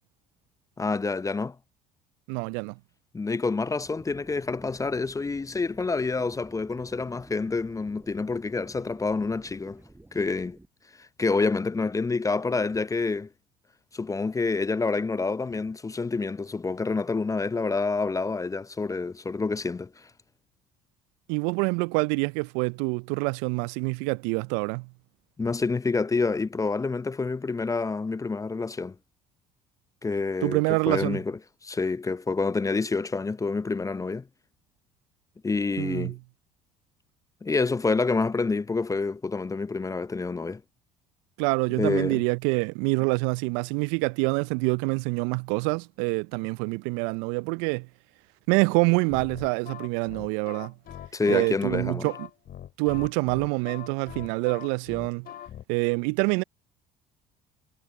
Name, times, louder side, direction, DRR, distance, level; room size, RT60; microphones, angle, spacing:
voice 1, 0.8-1.6 3.1-9.8 10.1-10.6 11.0-13.3 13.9-20.1 25.4-29.0 30.0-34.3 35.4-36.2 37.4-40.6 41.8-42.2 51.1-52.1, left 4 dB, 15° left, 0.6 m, -28 dB
voice 2, 2.3-2.7 21.3-24.9 30.4-31.2 35.8-36.1 41.4-47.9 48.5-50.7 51.3-52.3 52.8-55.3 55.7-56.4, right 33 dB, 65° right, 0.5 m, -26 dB
sound 1, 3.4-10.7, right 2 dB, 10° right, 7.6 m, -52 dB
sound 2, 49.1-55.6, left 11 dB, 50° left, 4.2 m, -42 dB
hypercardioid pair, 60°, 20 cm